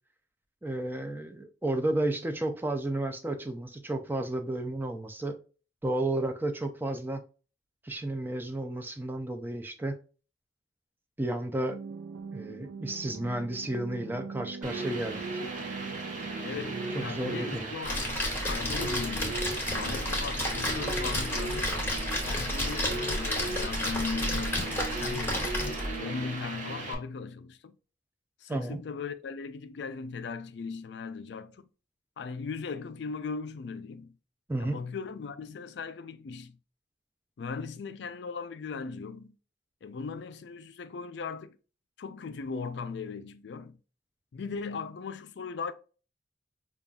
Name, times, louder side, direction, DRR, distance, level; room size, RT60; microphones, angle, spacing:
voice 1, 0.6-5.4 5.8-7.2 7.8-10.0 11.2-11.8 12.3-15.4 16.9-17.7 28.5-28.8 34.5-34.8, right 1 dB, 10° right, 0.4 m, -32 dB
sound 1, 11.7-17.6, right 5 dB, 75° right, 0.4 m, -41 dB
sound 2, 14.6-26.9, right 2 dB, 45° right, 0.9 m, -37 dB
voice 2, 16.4-21.8 22.2-25.5 25.8-27.8 28.4-31.7 32.2-34.1 34.6-36.6 37.4-39.3 39.8-41.6 42.0-43.8 44.3-45.7, left 5 dB, 65° left, 0.4 m, -38 dB
Splash splatter, 17.8-26.0, left 1 dB, 10° left, 0.9 m, -31 dB
5.2 x 2.4 x 2.3 m
head